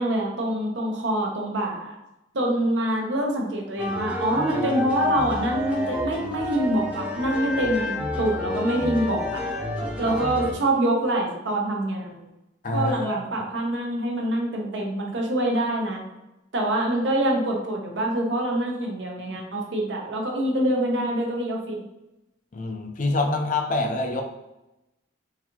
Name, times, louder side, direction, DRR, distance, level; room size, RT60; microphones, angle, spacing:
voice 1, 0.0-2.0 2.3-9.4 10.0-12.2 12.7-16.1 16.5-21.8, right 1 dB, 75° right, 0 dB, 0.8 m, -25 dB
sound 1, 3.8-10.5, left 2 dB, 5° right, 0.6 m, -29 dB
voice 2, 12.6-13.2 22.5-24.2, left 2 dB, 45° left, 3 dB, 0.5 m, -26 dB
3.9 x 2.7 x 2.9 m, 0.93 s
head